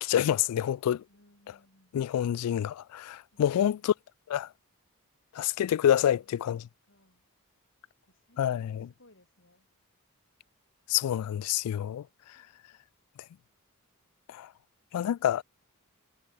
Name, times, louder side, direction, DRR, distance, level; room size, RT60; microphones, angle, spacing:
voice 1, 0.0-1.0 1.9-3.9 4.3-4.5 5.3-6.7 8.4-8.9 10.9-12.1 14.3-14.5 14.9-15.4, left 10 dB, 85° left, 0.3 m, -27 dB
voice 2, 1.1-2.0 6.2-7.3 8.0-9.7 12.3-12.6, left 1 dB, 60° left, 5.5 m, -63 dB
head